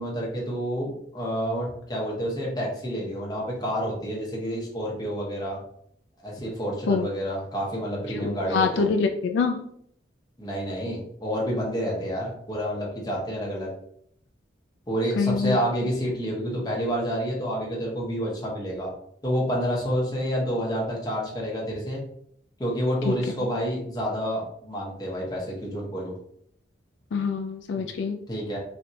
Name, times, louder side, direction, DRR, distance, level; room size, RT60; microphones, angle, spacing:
voice 1, 0.0-5.6 6.2-8.9 10.4-13.7 14.9-18.9 19.2-22.0 22.6-26.1 27.8-27.9 28.3-28.6, equal, 20° left, -3 dB, 0.9 m, -29 dB
voice 2, 8.1-9.7 15.2-15.6 23.0-23.1 27.1-28.2, left 5 dB, 80° left, 4 dB, 0.3 m, -25 dB
3.2 x 2.7 x 2.7 m, 0.69 s
head